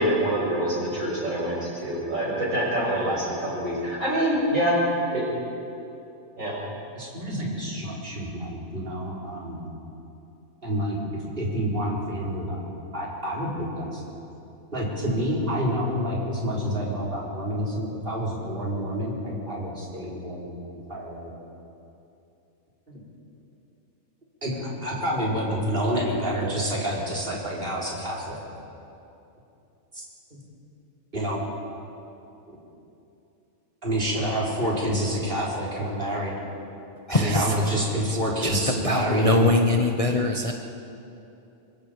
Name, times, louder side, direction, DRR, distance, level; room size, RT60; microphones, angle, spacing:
voice 1, 0.0-4.8 5.1-5.2 6.4-6.6, right 1 dB, 60° right, -5 dB, 7.2 m, -25 dB
voice 2, 6.9-9.6 10.6-14.0 14.7-20.6 20.9-21.3 22.9-23.0 24.4-28.4 29.9-30.0 30.3-30.4 31.1-31.4 32.5-32.6 33.8-36.4 37.1-39.5, equal, 35° right, -5 dB, 4.7 m, -28 dB
voice 3, 37.1-37.4 38.4-38.6 38.8-40.5, left 2 dB, 25° left, 2 dB, 1.0 m, -22 dB
25.0 x 24.5 x 5.3 m, 2.8 s
omnidirectional pair, 1.5 m